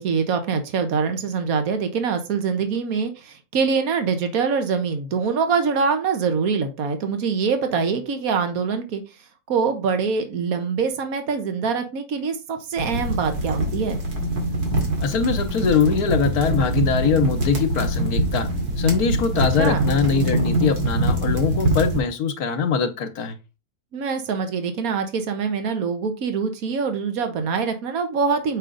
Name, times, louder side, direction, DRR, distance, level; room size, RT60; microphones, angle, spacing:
voice 1, 0.0-9.0 9.5-14.0 19.6-19.8 23.9-28.6, right 5 dB, 70° right, 1.6 m, -24 dB
sound 1, 12.8-22.0, right 1 dB, 85° right, 2.7 m, -24 dB
voice 2, 15.0-18.5 18.8-23.4, left 6 dB, 80° left, 1.4 m, -22 dB
7.4 x 5.1 x 3.8 m
omnidirectional pair, 1.6 m